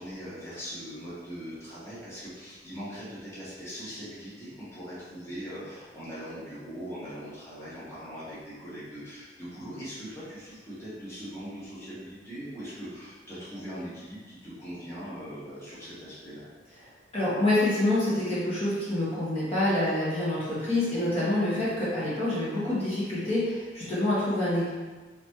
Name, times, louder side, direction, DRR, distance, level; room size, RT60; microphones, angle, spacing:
voice 1, 0.0-16.5, equal, 15° left, -11 dB, 1.3 m, -41 dB
voice 2, 17.1-24.7, left 1 dB, 35° left, -10 dB, 1.3 m, -27 dB
3.9 x 3.5 x 3.1 m, 1.3 s
head